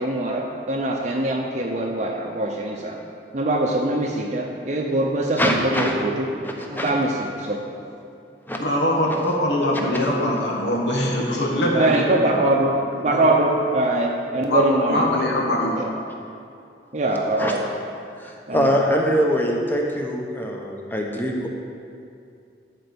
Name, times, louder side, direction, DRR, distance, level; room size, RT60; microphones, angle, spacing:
voice 1, 0.0-3.0 3.3-6.3 6.7-7.6 11.7-12.7 13.0-15.1 15.8-15.9 16.9-17.7 18.5-18.8, right 2 dB, 40° right, 0 dB, 0.7 m, -23 dB
voice 2, 5.4-6.0 6.4-6.9 8.5-8.7 9.9-10.1 17.4-17.5 18.2-21.5, equal, 10° left, 0 dB, 0.9 m, -23 dB
voice 3, 8.6-12.4 12.9-13.2 14.5-15.8, left 1 dB, 75° left, -2 dB, 1.3 m, -23 dB
12.5 x 4.5 x 6.9 m, 2.5 s
head